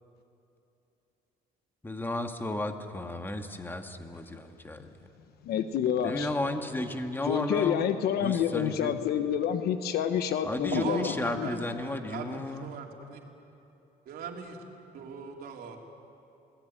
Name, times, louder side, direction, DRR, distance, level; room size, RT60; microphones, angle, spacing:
voice 1, 1.8-5.1 6.0-7.8 8.2-8.9 10.4-12.7, left 2 dB, 10° left, 5 dB, 1.9 m, -33 dB
voice 2, 5.5-6.3 7.3-11.1 11.4-11.5, left 9 dB, 70° left, 9 dB, 1.3 m, -28 dB
voice 3, 10.7-13.2 14.1-14.6 14.9-15.8, right 6 dB, 65° right, 1 dB, 3.6 m, -39 dB
28.0 x 19.0 x 9.3 m, 2.8 s
cardioid pair, 115°, 17 cm